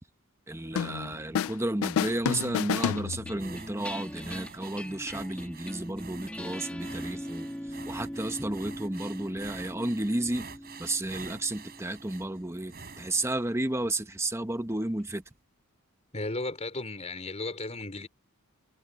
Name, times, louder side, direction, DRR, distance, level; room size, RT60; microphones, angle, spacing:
voice 1, 0.5-10.5 10.8-15.2, right 1 dB, 10° right, 1.1 m, -32 dB
sound 1, 0.8-1.6 1.8-3.6, left 8 dB, 65° left, 0.3 m, -30 dB
sound 2, 2.8-13.4, equal, 5° left, 2.1 m, -41 dB
sound 3, 3.4-14.0 14.5-14.7 15.0-15.1, right 5 dB, 45° right, 6.9 m, -48 dB
voice 2, 16.1-18.1, left 2 dB, 30° left, 4.3 m, -35 dB
head